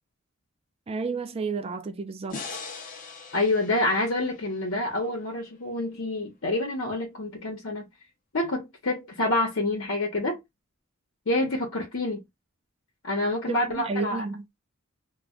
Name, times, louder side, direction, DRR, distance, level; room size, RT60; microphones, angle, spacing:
voice 1, 0.9-2.4 13.5-14.5, right 4 dB, 30° right, 0.3 m, -31 dB
sound 1, 2.3-5.5, left 4 dB, 40° left, 0.5 m, -41 dB
voice 2, 3.3-7.9 8.3-10.4 11.3-12.2 13.0-14.2, left 2 dB, 75° left, 0.8 m, -27 dB
2.3 x 2.1 x 3.5 m
head